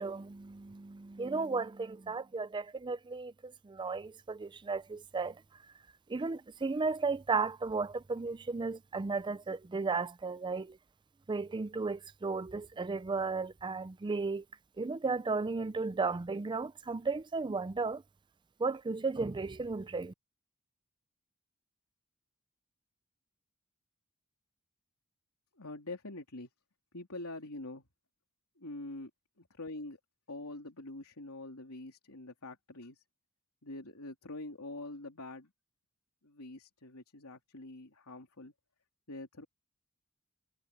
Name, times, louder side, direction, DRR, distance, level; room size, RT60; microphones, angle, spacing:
voice 1, 0.0-5.4 6.1-10.8 11.3-14.4 14.8-18.0 18.6-20.1, right 4 dB, 20° right, 0.4 m, -34 dB
voice 2, 25.5-26.5 26.9-27.9 28.6-29.1 29.4-30.0 30.3-33.0 33.6-35.5 36.2-38.5 39.1-39.5, left 2 dB, 80° left, 3.3 m, -45 dB
head